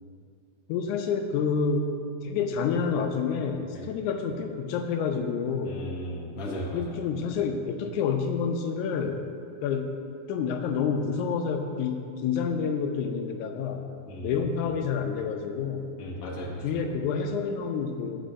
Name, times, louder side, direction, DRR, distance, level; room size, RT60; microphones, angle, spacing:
voice 1, 0.7-1.9 2.2-5.8 6.7-9.3 9.6-9.9 10.3-13.8 14.2-15.9 16.6-18.2, left 6 dB, 80° left, 4 dB, 2.0 m, -28 dB
voice 2, 5.7-6.9 14.1-14.3 16.0-16.6, equal, 45° left, -3 dB, 1.2 m, -36 dB
15.0 x 8.2 x 2.5 m, 2.3 s
omnidirectional pair, 3.6 m